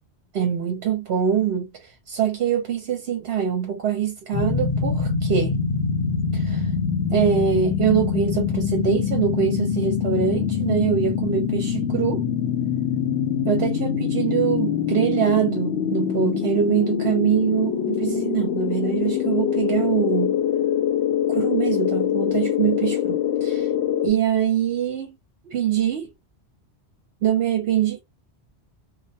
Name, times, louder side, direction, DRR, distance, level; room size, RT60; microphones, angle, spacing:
voice 1, 0.3-5.6 6.3-6.7 7.1-12.2 13.5-20.4 21.3-23.7 24.0-25.1 25.4-26.1 27.2-28.0, right 9 dB, 70° right, 0.9 m, -24 dB
sound 1, 4.3-24.1, left 8 dB, 75° left, 0.8 m, -24 dB
2.2 x 2.1 x 2.6 m
omnidirectional pair, 1.1 m